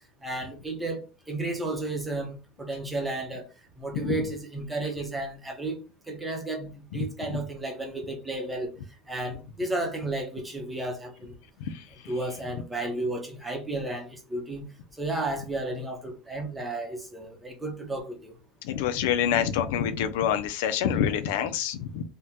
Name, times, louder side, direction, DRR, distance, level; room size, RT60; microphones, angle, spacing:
voice 1, 0.2-1.0 1.3-3.4 3.8-8.7 9.1-11.3 12.0-14.7 15.0-18.3, right 2 dB, 10° right, 0.7 m, -33 dB
voice 2, 18.6-22.0, left 9 dB, 85° left, 0.4 m, -26 dB
3.5 x 2.2 x 2.8 m
cardioid pair, 165°, 0 cm